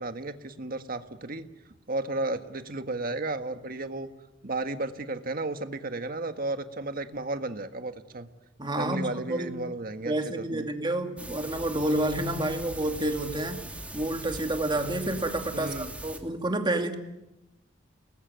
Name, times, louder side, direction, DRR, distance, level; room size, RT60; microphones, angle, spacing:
voice 1, 0.0-1.5 1.9-4.1 4.4-8.3 8.8-10.7 15.5-15.9, right 2 dB, 50° right, 8 dB, 1.7 m, -33 dB
voice 2, 8.6-9.5 10.0-13.6 13.9-17.0, right 1 dB, 25° right, 5 dB, 2.6 m, -29 dB
sound 1, 11.2-16.2, right 1 dB, 5° right, 3.0 m, -41 dB
29.5 x 20.5 x 9.3 m, 0.97 s
head